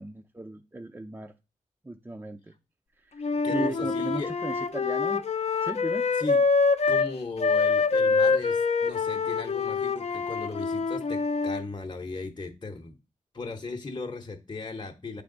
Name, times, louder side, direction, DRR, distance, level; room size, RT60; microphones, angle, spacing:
voice 1, 0.0-1.3 1.8-2.5 3.0-3.2 3.5-5.2 5.6-6.1, right 2 dB, 15° right, 4 dB, 0.5 m, -36 dB
Wind instrument woodwind instrument, 3.2-7.1 7.4-11.6, left 4 dB, 50° left, 0.6 m, -25 dB
voice 2, 3.4-4.3 6.2-6.4 6.9-13.0 13.3-15.2, left 3 dB, 35° left, 3 dB, 0.9 m, -37 dB
8.4 x 3.5 x 3.8 m, 0.30 s
cardioid pair, 55°, 14 cm